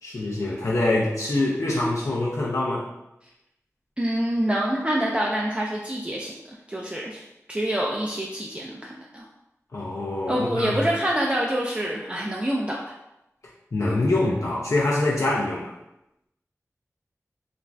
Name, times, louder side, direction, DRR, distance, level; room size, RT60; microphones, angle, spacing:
voice 1, 0.0-2.8 9.7-10.8 13.7-15.7, left 2 dB, 70° left, -4 dB, 0.5 m, -24 dB
voice 2, 4.0-7.2 7.5-9.3 10.3-12.8, right 1 dB, 20° right, -3 dB, 0.4 m, -26 dB
2.5 x 2.3 x 3.1 m, 0.89 s
wide cardioid pair, 50°, 6 cm